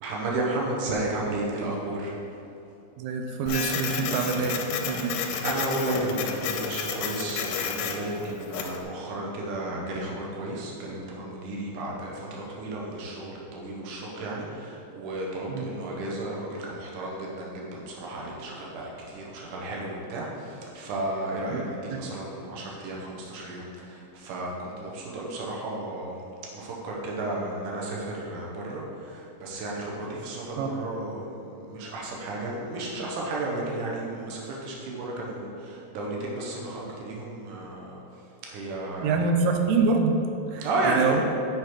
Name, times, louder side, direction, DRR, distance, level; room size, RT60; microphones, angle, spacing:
voice 1, 0.0-2.2 5.4-26.2 26.5-38.0 38.5-39.2 40.6-41.2, right 2 dB, 70° right, -3 dB, 2.5 m, -33 dB
voice 2, 3.0-5.2 15.5-15.7 21.5-21.6 21.9-22.0 30.6-30.7 39.0-40.2 40.5-41.2, right 4 dB, 90° right, 4 dB, 2.4 m, -26 dB
Printer, 3.5-8.8, left 6 dB, 80° left, 1.8 m, -32 dB
8.3 x 4.7 x 4.7 m, 2.7 s
omnidirectional pair, 3.9 m